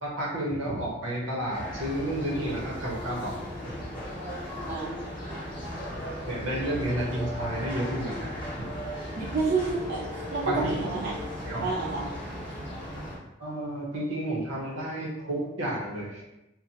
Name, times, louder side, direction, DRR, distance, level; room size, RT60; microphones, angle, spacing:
voice 1, 0.0-3.7 6.3-8.3 10.4-10.7 11.4-11.7 13.4-16.2, right 1 dB, 75° right, -4 dB, 0.8 m, -31 dB
sound 1, 1.5-13.2, equal, 25° left, 0.8 m, -36 dB
voice 2, 9.2-11.2 11.6-12.1, right 3 dB, 50° right, -7 dB, 0.4 m, -29 dB
2.8 x 2.1 x 2.7 m, 0.89 s
head